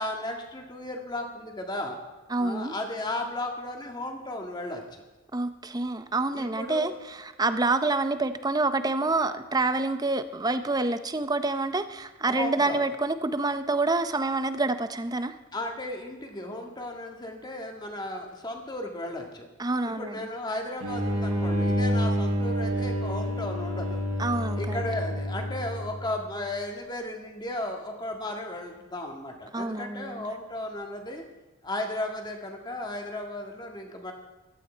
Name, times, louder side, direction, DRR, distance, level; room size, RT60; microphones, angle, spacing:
voice 1, 0.0-2.0 2.4-5.0 6.3-7.0 12.3-12.8 15.5-19.5 19.8-24.0 24.6-31.2 31.6-34.1, left 1 dB, 20° left, 2 dB, 1.8 m, -35 dB
voice 2, 2.3-2.7 5.3-6.9 7.2-15.3 19.6-20.3 24.2-24.8 29.5-30.3, right 3 dB, 20° right, 11 dB, 0.6 m, -27 dB
sound 1, 20.8-26.2, equal, 90° right, 6.0 m, -28 dB
15.5 x 12.5 x 4.5 m, 1.1 s
head